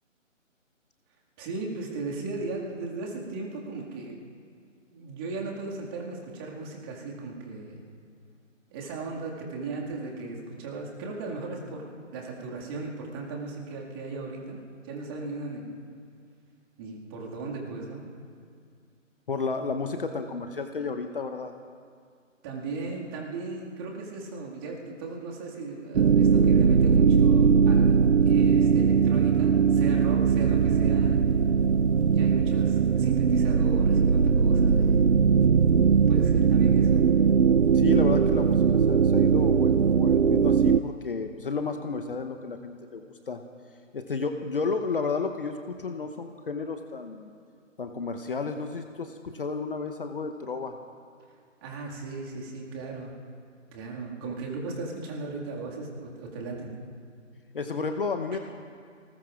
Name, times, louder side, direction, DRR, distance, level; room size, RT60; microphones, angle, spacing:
voice 1, 1.4-4.2 4.9-7.8 8.7-14.6 14.8-15.7 16.8-18.1 22.4-28.0 28.2-31.2 32.1-35.0 36.1-37.1 51.6-53.1 53.7-56.7, right 3 dB, 20° right, -2 dB, 2.0 m, -37 dB
voice 2, 19.3-21.5 30.5-30.7 37.7-43.4 43.9-47.3 47.8-50.8 57.5-58.5, left 4 dB, 45° left, 6 dB, 0.9 m, -32 dB
sound 1, 26.0-40.8, right 6 dB, 60° right, 0.6 m, -20 dB
29.5 x 19.5 x 2.5 m, 2.2 s
figure-of-eight pair, 145°, 39 cm